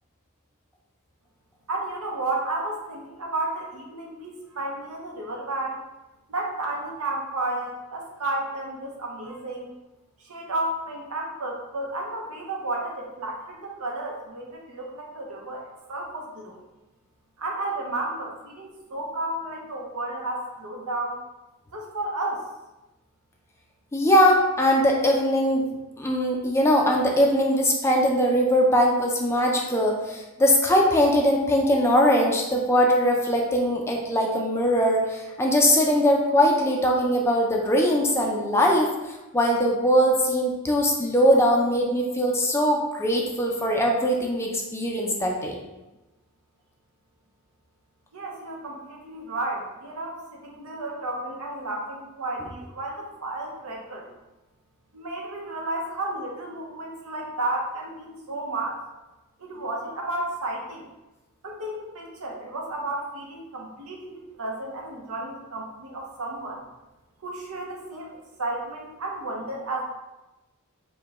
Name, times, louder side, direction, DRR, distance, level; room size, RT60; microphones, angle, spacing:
voice 1, 1.7-5.8 6.3-9.7 10.2-16.6 17.4-21.2 21.7-22.4 48.1-54.1 54.9-58.8 59.4-60.9 61.4-66.6 67.2-68.1 68.4-69.8, right 2 dB, 75° right, -1 dB, 0.8 m, -32 dB
voice 2, 23.9-38.9 39.3-45.6, equal, 10° left, 0 dB, 0.4 m, -21 dB
4.6 x 2.2 x 3.5 m, 1.0 s
head